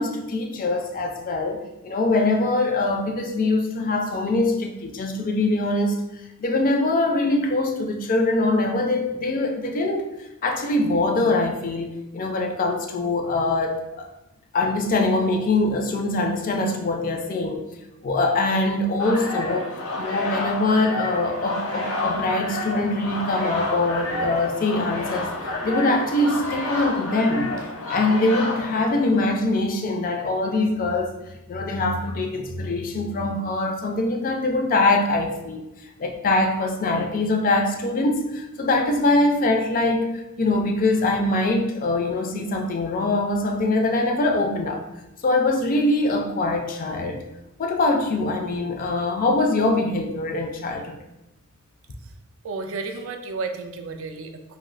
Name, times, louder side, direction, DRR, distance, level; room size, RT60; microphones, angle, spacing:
voice 1, 0.0-6.0 6.4-10.1 10.4-14.1 14.5-17.6 18.0-19.7 20.0-31.1 31.5-35.6 36.0-44.8 45.2-47.2 47.6-51.0, left 2 dB, 40° left, 3 dB, 0.4 m, -23 dB
sound 1, 19.0-29.5, left 2 dB, 80° left, 0.7 m, -30 dB
voice 2, 52.4-54.6, right 4 dB, 65° right, 6 dB, 0.3 m, -32 dB
2.6 x 2.1 x 3.8 m, 0.93 s
head